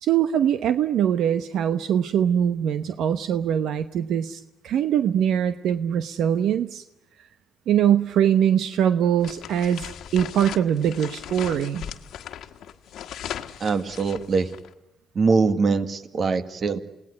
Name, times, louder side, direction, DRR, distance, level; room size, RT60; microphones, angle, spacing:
voice 1, 0.0-6.8 7.7-11.8, right 9 dB, 80° right, 11 dB, 1.0 m, -22 dB
sound 1, 9.2-14.7, left 10 dB, 75° left, 1.5 m, -38 dB
voice 2, 13.6-14.5 15.1-16.8, right 4 dB, 50° right, 10 dB, 1.9 m, -22 dB
28.5 x 18.5 x 9.6 m, 0.94 s
cardioid pair, 90°, 0 cm